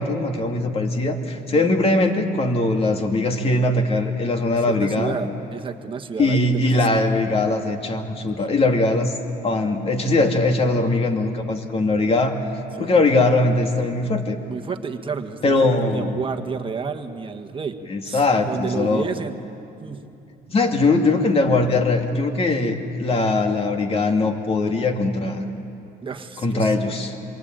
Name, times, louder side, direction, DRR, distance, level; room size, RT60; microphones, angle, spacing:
voice 1, 0.0-5.2 6.2-9.1 9.4-12.4 12.8-14.4 15.4-16.2 17.9-19.1 20.5-25.4 26.4-27.2, left 2 dB, 35° left, 4 dB, 2.6 m, -21 dB
voice 2, 1.2-1.7 4.7-7.0 8.4-8.5 12.8-12.9 14.5-17.8 18.0-19.4 19.8-20.0 26.0-26.7, right 6 dB, 30° right, 6 dB, 1.6 m, -31 dB
27.5 x 23.5 x 9.1 m, 2.7 s
cardioid pair, 110°, 17 cm